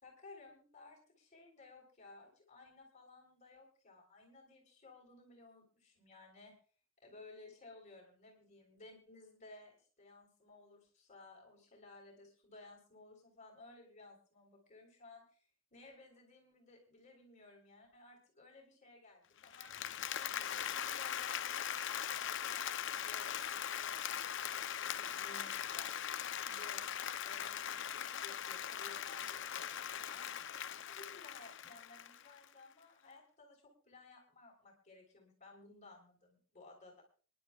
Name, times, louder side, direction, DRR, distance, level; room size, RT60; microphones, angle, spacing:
voice 1, 0.0-6.5 7.0-19.7 20.2-26.0 26.3-26.8 27.2-30.6 30.9-37.0, left 2 dB, 35° left, 0 dB, 3.7 m, -58 dB
Applause, 19.4-32.5, left 9 dB, 60° left, 0.6 m, -40 dB
27.0 x 11.0 x 2.3 m, 0.39 s
head